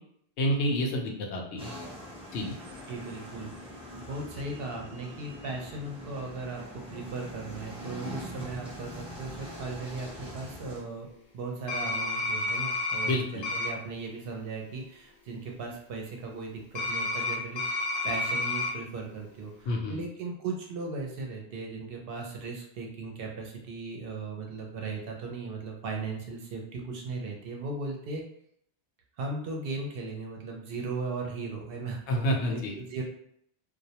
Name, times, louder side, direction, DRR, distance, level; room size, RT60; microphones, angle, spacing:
voice 1, 0.4-1.7 2.3-2.6 13.0-13.4 19.7-20.0 32.1-32.8, equal, 85° left, 0 dB, 0.9 m, -29 dB
sound 1, 1.6-10.8, left 1 dB, 10° right, 0.4 m, -43 dB
voice 2, 2.9-3.5 4.0-11.1 11.3-17.7 18.0-28.2 29.2-33.0, right 3 dB, 65° right, 0 dB, 0.7 m, -37 dB
sound 2, 11.7-13.1 13.4-13.7 16.8-18.7, left 2 dB, 55° left, 0.6 m, -30 dB
2.2 x 2.1 x 2.8 m, 0.70 s
omnidirectional pair, 1.1 m